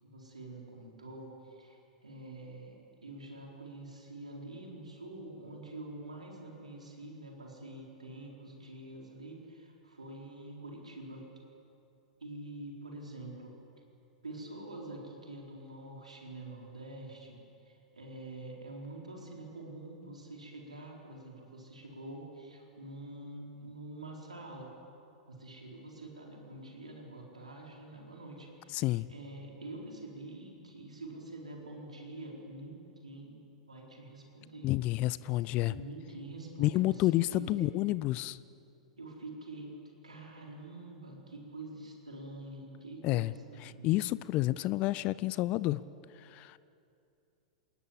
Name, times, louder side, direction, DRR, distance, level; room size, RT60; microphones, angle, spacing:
voice 1, 0.0-11.2 12.2-13.5 14.2-17.4 17.6-24.7 25.3-32.8 33.0-33.4 33.7-34.7 35.7-37.7 39.0-39.7 40.0-44.0, right 2 dB, 75° right, -1 dB, 4.5 m, -46 dB
voice 2, 28.7-29.1 34.6-35.7 36.6-38.4 43.0-43.3 43.6-45.8 46.2-46.6, left 17 dB, 35° left, 18 dB, 0.5 m, -30 dB
27.0 x 20.5 x 7.5 m, 2.6 s
figure-of-eight pair, 100°, 4 cm